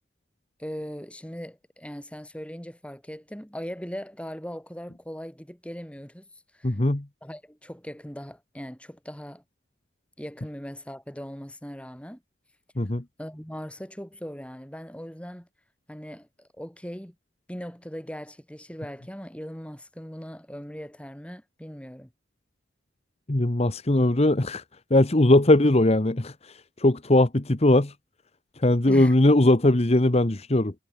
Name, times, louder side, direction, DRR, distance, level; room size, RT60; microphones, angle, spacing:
voice 1, 0.6-6.3 6.5-6.8 7.2-9.4 10.2-12.2 13.2-15.5 15.9-17.2 17.5-22.1 28.8-29.2, equal, 5° left, 5.3 m, -39 dB
voice 2, 6.6-7.1 12.8-13.0 23.3-24.6 24.9-27.9 28.6-30.7, left 1 dB, 35° left, 1.1 m, -20 dB
head